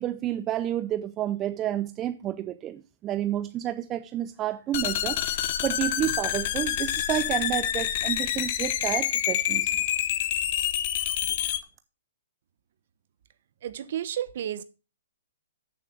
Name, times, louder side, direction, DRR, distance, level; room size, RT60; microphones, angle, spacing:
voice 1, 0.0-9.7, right 12 dB, 20° right, 0.6 m, -30 dB
sound 1, 4.7-11.6, left 11 dB, 40° left, 0.9 m, -27 dB
voice 2, 13.6-14.6, right 10 dB, 50° right, 1.0 m, -32 dB
8.2 x 7.0 x 6.0 m
hypercardioid pair, 155°, 0 cm